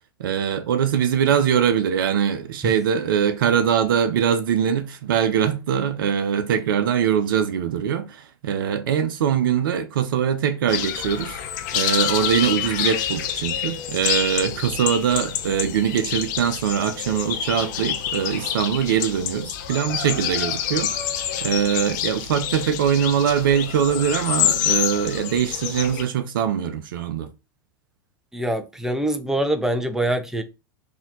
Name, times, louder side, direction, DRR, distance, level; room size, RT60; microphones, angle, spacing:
voice 1, 0.2-11.4 11.7-21.0 21.4-27.3, right 8 dB, 70° right, 0.7 m, -22 dB
sound 1, 10.7-26.0, left 10 dB, 55° left, 0.7 m, -27 dB
voice 2, 28.3-30.4, right 1 dB, 5° right, 0.5 m, -24 dB
4.1 x 2.8 x 3.8 m
figure-of-eight pair, 90°, 12 cm